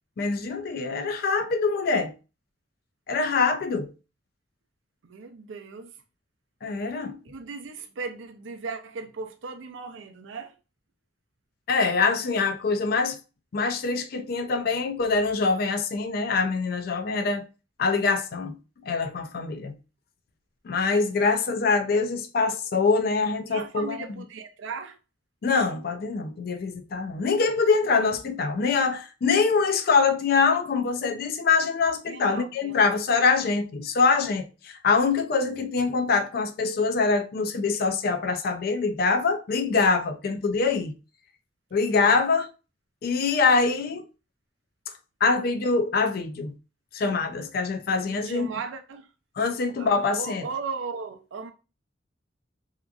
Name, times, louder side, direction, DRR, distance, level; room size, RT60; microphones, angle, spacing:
voice 1, 0.2-2.1 3.1-3.9 6.6-7.2 11.7-13.2 13.5-17.4 17.8-18.5 18.8-19.8 20.6-24.0 25.4-40.9 41.7-42.5 43.0-44.0 45.2-46.5 46.9-48.5 49.4-50.5, left 4 dB, 55° left, 0.3 m, -24 dB
voice 2, 5.0-5.9 7.2-10.5 21.5-21.6 23.5-25.0 32.1-32.9 41.9-42.2 48.0-49.1 49.8-51.5, right 4 dB, 85° right, 0.4 m, -37 dB
2.8 x 2.3 x 2.3 m
head